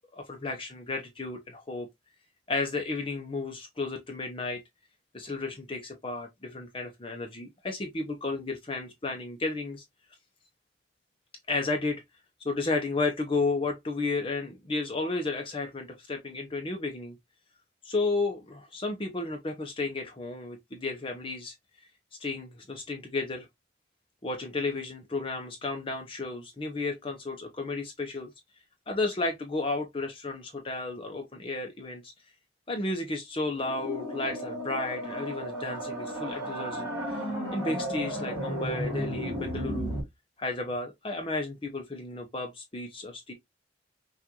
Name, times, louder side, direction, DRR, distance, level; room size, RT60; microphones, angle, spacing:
voice 1, 0.1-1.9 2.5-4.6 5.1-9.8 11.5-12.0 12.4-17.2 17.8-21.5 22.2-23.5 24.2-28.3 28.9-32.1 32.7-37.2 37.5-39.9 40.4-43.3, left 3 dB, 30° left, 0.8 m, -33 dB
sound 1, 33.5-40.0, equal, 20° right, 3.1 m, -34 dB
5.9 x 2.6 x 3.0 m
head